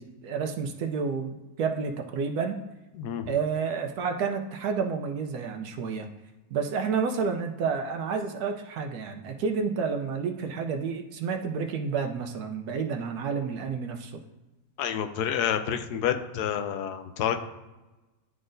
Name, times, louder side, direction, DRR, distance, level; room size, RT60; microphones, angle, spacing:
voice 1, 0.0-2.6 3.3-6.1 6.5-14.2, right 5 dB, 75° right, 4 dB, 1.1 m, -30 dB
voice 2, 2.9-3.3 14.8-17.4, left 9 dB, 85° left, 7 dB, 1.1 m, -28 dB
11.0 x 3.8 x 2.6 m, 1.1 s
omnidirectional pair, 1.7 m